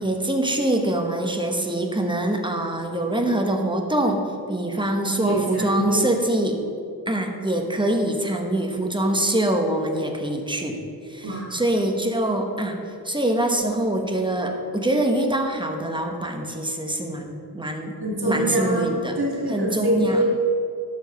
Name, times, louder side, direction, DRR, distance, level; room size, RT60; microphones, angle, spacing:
voice 1, 0.0-4.2 4.5-6.6 7.1-10.8 11.0-12.8 13.0-17.9 18.2-19.2 19.5-20.2, right 1 dB, 15° right, 3 dB, 1.0 m, -24 dB
voice 2, 5.2-6.1 11.2-11.6 18.0-18.9 19.2-20.2, right 1 dB, 85° right, -6 dB, 1.7 m, -25 dB
12.5 x 4.8 x 5.2 m, 2.5 s
wide cardioid pair, 90°, 37 cm